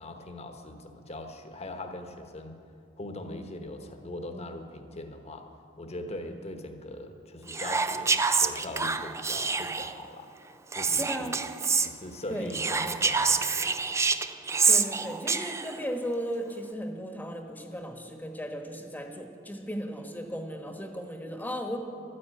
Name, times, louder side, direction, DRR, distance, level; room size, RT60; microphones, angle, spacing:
voice 1, 0.0-2.5 3.0-5.5 5.8-10.3 10.7-11.4 11.8-14.0, left 1 dB, 35° left, 5 dB, 1.2 m, -41 dB
Whispering, 7.5-10.0 10.7-11.9 12.5-15.8, right 5 dB, 15° right, 0.4 m, -27 dB
voice 2, 11.0-11.4 12.3-12.5 14.7-21.8, equal, 10° left, 4 dB, 1.2 m, -36 dB
12.5 x 9.9 x 8.9 m, 2.4 s
head